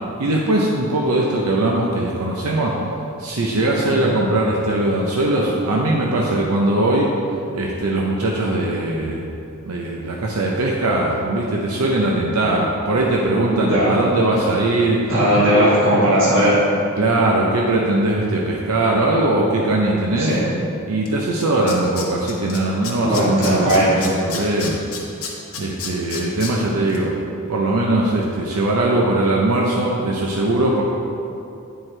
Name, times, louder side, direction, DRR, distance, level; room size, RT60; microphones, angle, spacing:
voice 1, 0.2-2.7 3.2-7.1 7.5-9.2 9.6-15.1 15.5-15.8 17.0-20.3 20.9-24.8 25.6-27.1 27.5-30.8, right 2 dB, 80° right, -2 dB, 0.6 m, -20 dB
voice 2, 15.1-16.6 20.2-20.4 23.0-24.0, equal, 60° right, -9 dB, 1.5 m, -17 dB
Tools, 21.1-21.2 21.4-22.6 22.8-26.5 26.9-27.0, left 6 dB, 75° left, 1.0 m, -30 dB
9.1 x 4.5 x 3.3 m, 2.7 s
head